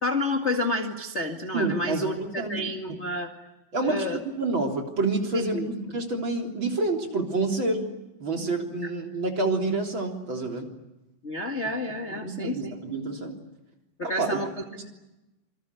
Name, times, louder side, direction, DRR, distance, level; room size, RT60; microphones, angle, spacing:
voice 1, 0.0-3.3 3.8-4.2 5.3-5.7 8.8-8.9 11.2-12.7 14.0-14.5, left 2 dB, 30° left, 4 dB, 1.5 m, -29 dB
voice 2, 1.5-2.7 3.7-7.9 8.2-10.7 12.2-13.3 14.0-14.4 14.7-14.9, right 3 dB, 35° right, 2 dB, 4.0 m, -28 dB
27.5 x 25.0 x 8.3 m, 0.99 s
omnidirectional pair, 4.2 m